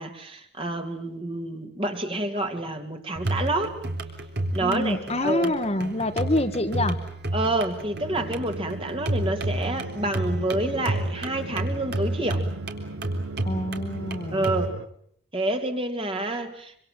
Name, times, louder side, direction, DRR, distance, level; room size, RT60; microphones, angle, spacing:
voice 1, 0.0-3.8 4.5-5.5 7.3-12.4 14.3-14.7 15.3-16.8, right 2 dB, 25° right, 5 dB, 2.6 m, -28 dB
sound 1, 3.2-14.7, right 1 dB, 55° right, 3.7 m, -31 dB
voice 2, 4.6-7.0 13.4-14.5, left 1 dB, 30° left, 7 dB, 1.5 m, -26 dB
sound 2, 7.9-14.9, right 1 dB, 85° right, 1.6 m, -38 dB
26.0 x 26.0 x 7.6 m, 0.66 s
head